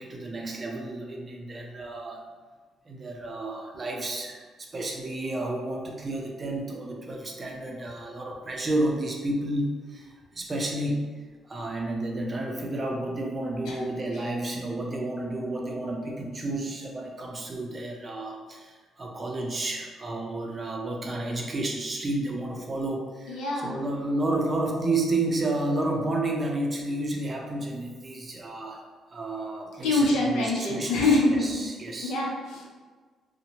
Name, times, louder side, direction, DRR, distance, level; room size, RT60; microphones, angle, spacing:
voice 1, 0.0-2.2 2.9-4.4 4.7-11.1 11.5-28.8 29.1-32.2, right 2 dB, 30° right, 0 dB, 0.5 m, -31 dB
voice 2, 23.3-23.8 29.8-31.5 32.0-32.7, left 2 dB, 90° left, -3 dB, 0.6 m, -25 dB
2.7 x 2.1 x 2.8 m, 1.4 s
cardioid pair, 90°, 0 cm